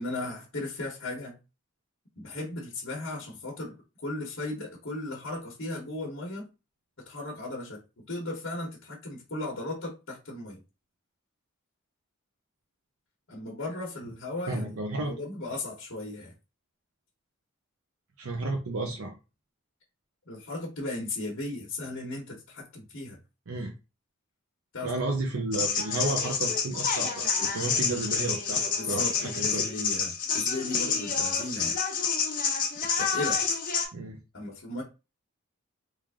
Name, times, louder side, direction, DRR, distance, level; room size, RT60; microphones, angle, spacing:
voice 1, 0.0-1.3 2.2-3.8 4.0-6.5 7.0-10.6 13.3-16.3 20.3-23.2 24.7-24.9 28.8-31.8 33.0-33.4 34.3-34.8, left 2 dB, 60° left, 1.0 m, -36 dB
voice 2, 14.5-15.1 18.2-19.1 23.5-23.7 24.8-29.7 30.4-30.5 33.9-34.2, right 2 dB, 75° right, 0.7 m, -32 dB
sound 1, 25.5-33.9, left 5 dB, 40° left, 0.8 m, -28 dB
3.2 x 2.5 x 3.5 m
head